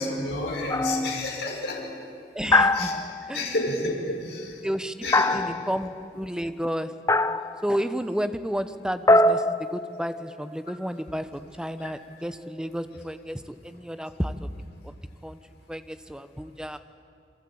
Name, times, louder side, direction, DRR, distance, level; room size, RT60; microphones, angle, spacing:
voice 1, 0.0-1.9 2.7-3.0 3.3-4.6 5.0-5.5 11.8-11.9, left 1 dB, 70° left, -1 dB, 5.4 m, -30 dB
sound 1, 0.7-1.2 2.5-3.4 5.1-5.9 7.1-7.6 9.1-10.3, left 2 dB, 20° left, 0.6 m, -22 dB
voice 2, 2.3-2.9 3.3-3.5 4.6-4.9 5.3-6.9 7.6-14.5 14.8-14.9 15.2-15.4 15.7-16.8, equal, 5° right, 10 dB, 1.0 m, -31 dB
28.5 x 23.5 x 8.7 m, 2.4 s
head